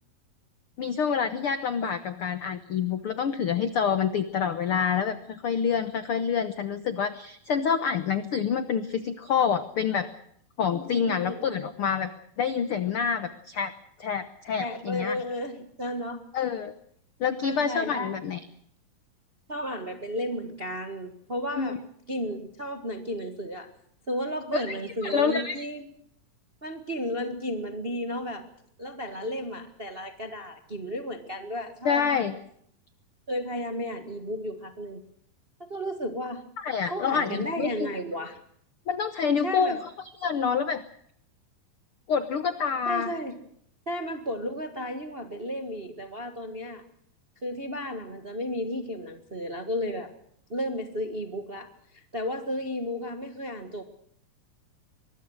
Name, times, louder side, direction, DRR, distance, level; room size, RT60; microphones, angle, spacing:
voice 1, 0.8-10.1 10.6-12.1 12.4-13.7 14.0-15.2 16.3-16.7 17.2-18.4 21.5-21.8 24.5-24.8 25.0-25.6 31.8-32.3 36.6-37.7 38.9-40.8 42.1-43.1, left 6 dB, 85° left, 11 dB, 1.2 m, -27 dB
voice 2, 10.7-11.6 14.6-16.2 17.4-18.1 19.5-21.8 22.1-23.7 24.1-25.9 26.6-28.5 28.8-32.2 33.3-35.0 35.6-36.4 36.9-38.4 39.4-39.8 42.8-43.4 43.9-46.8 47.4-50.1 50.5-53.8, equal, 45° right, 7 dB, 0.7 m, -33 dB
24.0 x 21.0 x 6.4 m, 0.68 s
omnidirectional pair, 4.1 m